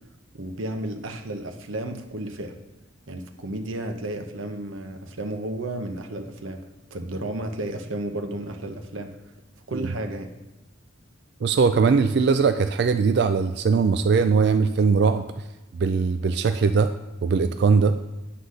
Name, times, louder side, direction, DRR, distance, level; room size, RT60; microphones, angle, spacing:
voice 1, 0.3-2.5 3.1-6.6 6.9-9.2 9.7-10.3, right 1 dB, 85° right, 5 dB, 0.9 m, -32 dB
voice 2, 11.4-15.2 15.7-16.9 17.2-17.9, right 5 dB, 55° right, 9 dB, 0.3 m, -20 dB
9.9 x 4.0 x 6.4 m, 1.0 s
head